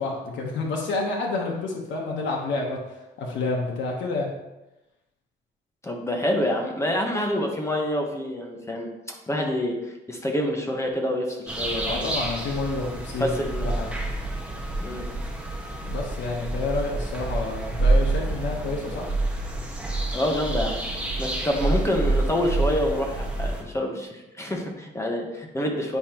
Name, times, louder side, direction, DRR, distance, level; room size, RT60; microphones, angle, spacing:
voice 1, 0.0-4.4 11.8-13.9 15.8-19.0, left 3 dB, 75° left, -1 dB, 1.2 m, -29 dB
voice 2, 5.8-12.1 13.2-13.7 14.8-15.1 20.1-20.8 21.2-26.0, left 1 dB, 15° left, 1 dB, 1.0 m, -27 dB
sound 1, 11.5-23.6, right 2 dB, 5° right, 1.2 m, -27 dB
9.4 x 5.1 x 3.0 m, 0.99 s
cardioid pair, 150°, 19 cm